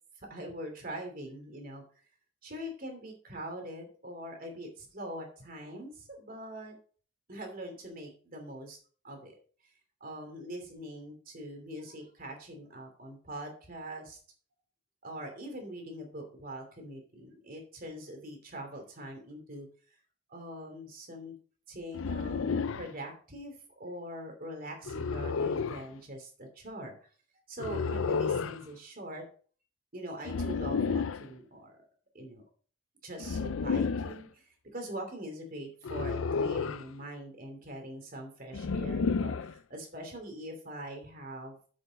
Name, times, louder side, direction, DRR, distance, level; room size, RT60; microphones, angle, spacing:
voice 1, 0.3-1.8 2.4-6.8 7.3-8.8 9.0-9.3 10.0-14.2 15.0-19.7 20.3-21.3 21.7-26.9 27.5-29.2 29.9-31.8 32.1-32.4 33.0-41.6, right 1 dB, 45° right, 3 dB, 2.8 m, -43 dB
sound 1, 21.9-22.9 24.9-25.8 27.6-28.6 30.2-31.3 33.2-34.2 35.8-36.9 38.5-39.5, left 5 dB, 85° left, 0.5 m, -31 dB
7.9 x 7.0 x 5.1 m, 0.43 s
head